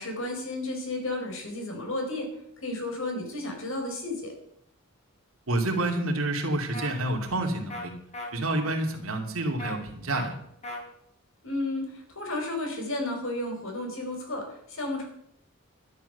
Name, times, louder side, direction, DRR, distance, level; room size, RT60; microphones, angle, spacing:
voice 1, 0.0-2.3 2.6-4.3 11.4-15.0, left 2 dB, 65° left, 3 dB, 4.3 m, -32 dB
voice 2, 5.5-7.9 8.3-10.4, right 1 dB, 75° right, 2 dB, 2.9 m, -28 dB
sound 1, 6.7-6.9 7.7-7.8 8.1-8.3 9.6-9.7 10.1-10.3 10.6-10.8, left 2 dB, 30° left, 3.5 m, -36 dB
12.5 x 10.5 x 6.8 m, 0.72 s
head